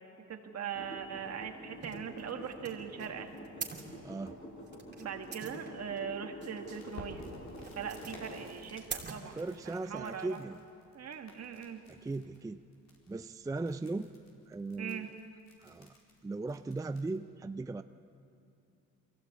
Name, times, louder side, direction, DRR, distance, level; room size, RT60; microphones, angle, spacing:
voice 1, 0.2-3.3 5.0-7.4 7.7-10.4 10.9-11.8 14.8-15.1, right 7 dB, 55° right, 5 dB, 1.9 m, -41 dB
sound 1, 0.7-8.8, equal, 40° left, 5.3 m, -48 dB
sound 2, 1.8-10.0, right 5 dB, 35° right, 2.9 m, -46 dB
voice 2, 4.0-4.4 9.4-10.6 11.9-12.6 13.1-14.1 14.5-15.1 15.6-15.9 16.2-17.8, right 3 dB, 10° right, 10 dB, 0.4 m, -38 dB
Crackle, 6.7-17.2, left 2 dB, 60° left, 4.4 m, -56 dB
23.0 x 16.0 x 8.5 m, 2.6 s
cardioid pair, 90°, 30 cm